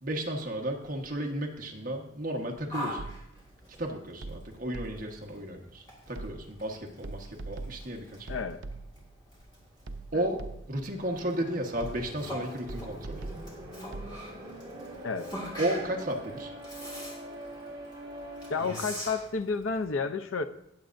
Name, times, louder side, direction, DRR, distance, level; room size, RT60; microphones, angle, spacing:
voice 1, 0.0-3.1 3.8-8.4 10.1-10.4 10.7-13.2 15.6-16.5, right 1 dB, 45° right, 1.4 m, -33 dB
Yell, 2.7-19.8, equal, 20° left, 1.9 m, -44 dB
sound 1, 3.0-3.5 4.2-5.3 6.1-6.7 7.0-9.2 9.9-10.9 11.8-12.3 12.7-14.2, right 3 dB, 70° right, 0.7 m, -42 dB
voice 2, 8.3-8.6 10.1-10.3 15.0-15.3 18.5-20.4, left 4 dB, 85° left, 0.7 m, -31 dB
sound 2, 11.0-18.6, right 1 dB, 20° right, 2.0 m, -44 dB
19.0 x 7.5 x 2.6 m
head